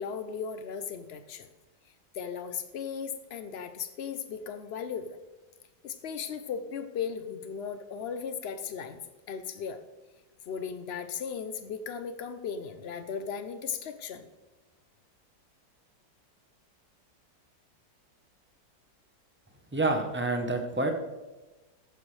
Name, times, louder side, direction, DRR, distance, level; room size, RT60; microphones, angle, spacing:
voice 1, 0.0-1.5 2.1-5.2 5.8-9.0 9.3-9.8 10.5-14.3, left 7 dB, 80° left, 9 dB, 0.5 m, -36 dB
voice 2, 19.7-20.9, right 2 dB, 15° right, 4 dB, 0.3 m, -28 dB
15.0 x 9.2 x 3.2 m, 1.1 s
omnidirectional pair, 2.0 m